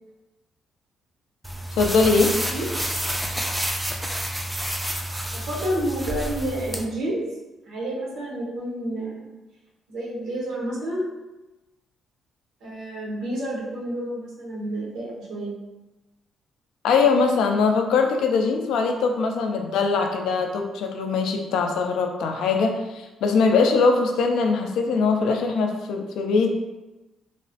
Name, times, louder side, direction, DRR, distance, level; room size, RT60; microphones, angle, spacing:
sound 1, 1.4-6.8, right 1 dB, 5° right, 0.3 m, -29 dB
voice 1, 1.8-2.3 16.8-26.5, left 4 dB, 80° left, 3 dB, 0.3 m, -21 dB
voice 2, 5.3-7.2 7.7-9.3 9.9-11.0 12.6-15.5, right 1 dB, 85° right, -4 dB, 0.9 m, -29 dB
3.0 x 2.0 x 2.7 m, 1.1 s
cardioid pair, 90°, 0 cm